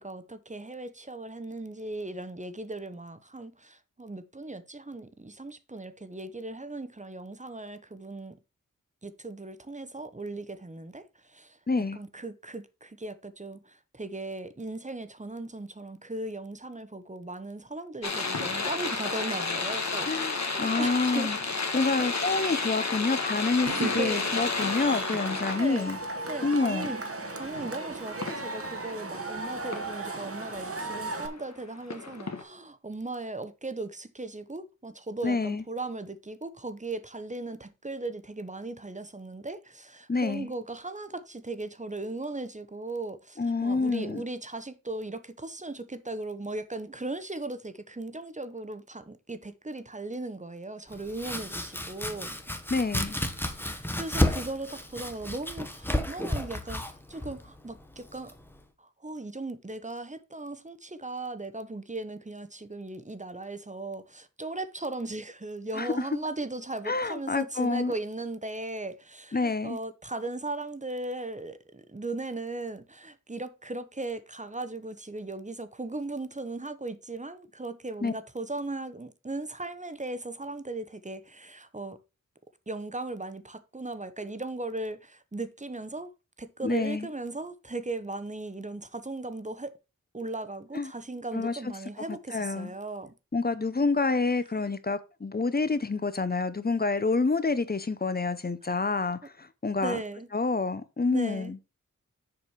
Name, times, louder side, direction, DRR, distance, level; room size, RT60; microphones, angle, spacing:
voice 1, 0.0-8.4 9.0-11.6 11.9-20.1 20.5-21.3 22.0-22.2 23.8-24.4 25.6-25.9 26.3-27.0 27.3-52.4 53.4-58.3 58.8-82.0 82.7-86.1 86.4-89.7 90.1-93.1 99.8-100.3 101.1-101.5, right 2 dB, 20° right, 0.9 m, -37 dB
voice 2, 11.7-12.0 20.0-21.4 21.7-26.0 26.4-26.9 35.2-35.6 40.1-40.5 43.4-44.2 52.7-53.2 65.7-66.1 66.9-67.9 69.3-69.8 78.0-78.1 86.6-87.1 90.7-90.9 91.3-91.5 92.3-92.7 93.3-100.0 100.3-101.6, left 3 dB, 30° left, 0.8 m, -28 dB
sound 1, 18.0-31.5 31.9-32.4, left 4 dB, 55° left, 1.4 m, -32 dB
Cheering / Crowd, 23.7-31.3, right 3 dB, 45° right, 1.1 m, -36 dB
Domestic sounds home sounds, 50.9-58.6, left 1 dB, 5° left, 1.2 m, -32 dB
7.2 x 5.0 x 4.8 m
wide cardioid pair, 60°, 32 cm